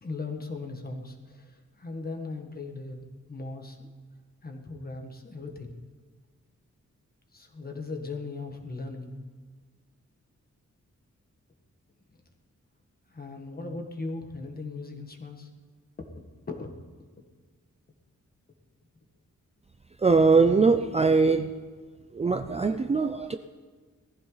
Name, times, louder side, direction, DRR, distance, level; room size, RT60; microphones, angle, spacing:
voice 1, 0.0-3.0 3.3-3.9 4.4-5.7 7.3-9.1 13.1-15.5 16.0-16.7, left 3 dB, 30° left, 4 dB, 1.7 m, -38 dB
voice 2, 20.0-21.5 22.1-23.3, right 4 dB, 20° right, 7 dB, 0.4 m, -21 dB
19.0 x 14.5 x 4.0 m, 1.5 s
wide cardioid pair, 170°, 30 cm